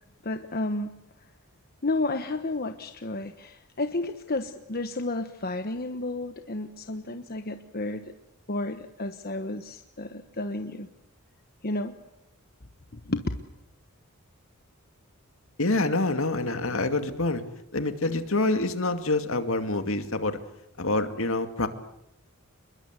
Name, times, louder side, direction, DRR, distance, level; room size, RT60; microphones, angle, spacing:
voice 1, 0.2-0.9 1.8-8.1 8.5-10.9 11.6-11.9 12.9-13.2, left 2 dB, 45° left, 7 dB, 1.3 m, -32 dB
voice 2, 15.6-17.4 17.7-20.4 20.8-21.7, left 2 dB, 65° left, 8 dB, 2.4 m, -26 dB
27.5 x 22.0 x 8.3 m, 0.82 s
head